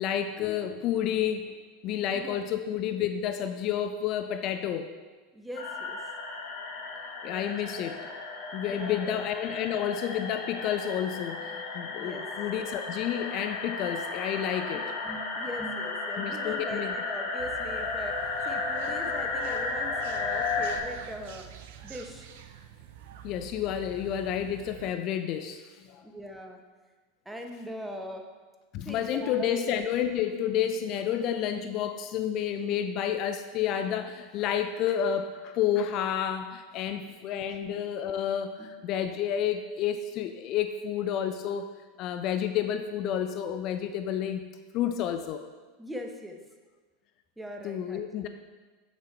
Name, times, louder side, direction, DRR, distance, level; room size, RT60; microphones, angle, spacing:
voice 1, 0.0-1.5 1.8-4.9 7.2-8.0 8.5-14.8 16.2-16.9 23.2-26.0 28.7-41.7 42.0-44.4 44.7-45.4 47.6-48.3, left 9 dB, 50° left, 9 dB, 0.5 m, -30 dB
voice 2, 2.1-2.4 5.3-6.0 7.3-7.8 8.1-8.2 8.7-9.2 12.0-12.3 14.7-18.2 18.4-21.5 21.8-22.3 26.0-26.6 27.3-28.2 28.8-29.6 36.9-37.2 37.6-37.8 38.6-38.7 45.8-46.4 47.4-48.0, equal, 5° right, 3 dB, 1.1 m, -41 dB
sound 1, 5.5-20.8, left 3 dB, 65° left, 1.4 m, -34 dB
sound 2, 17.4-24.9, right 10 dB, 65° right, 0.6 m, -47 dB
7.6 x 6.8 x 4.5 m, 1.3 s
hypercardioid pair, 85°, 0 cm